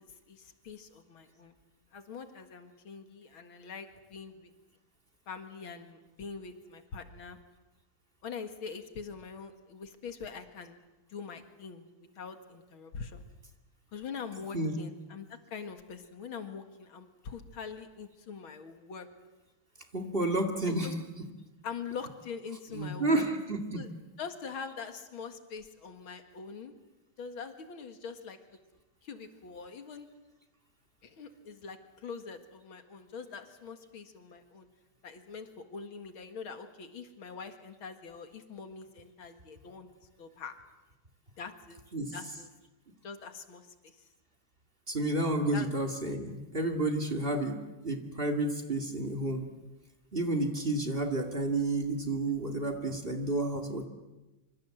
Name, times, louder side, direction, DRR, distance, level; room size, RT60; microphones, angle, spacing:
voice 1, 0.0-1.5 1.9-4.5 5.3-7.4 8.2-10.8 11.1-11.9 12.2-13.2 13.9-19.1 20.8-20.9 21.6-23.2 23.8-23.9 24.2-26.8 27.2-28.4 29.0-30.1 31.0-34.7 35.0-39.9 40.2-40.6 41.4-41.8 42.1-42.5 43.0-43.9 45.5-45.7, left 5 dB, 70° left, 7 dB, 2.6 m, -43 dB
voice 2, 19.9-21.0 22.7-23.8 41.9-42.1 44.9-47.6 47.8-49.5 50.1-53.9, right 2 dB, 25° right, 7 dB, 2.4 m, -30 dB
26.0 x 25.5 x 7.8 m, 1.1 s
omnidirectional pair, 2.3 m